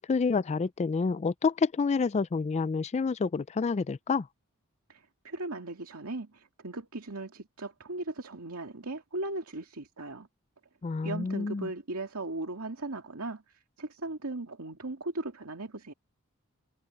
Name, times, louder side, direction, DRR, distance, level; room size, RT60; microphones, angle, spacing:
voice 1, 0.0-4.3 10.8-11.7, left 4 dB, 30° left, 0.3 m, -28 dB
voice 2, 4.9-10.3 11.0-15.9, right 2 dB, 70° right, 2.5 m, -38 dB
head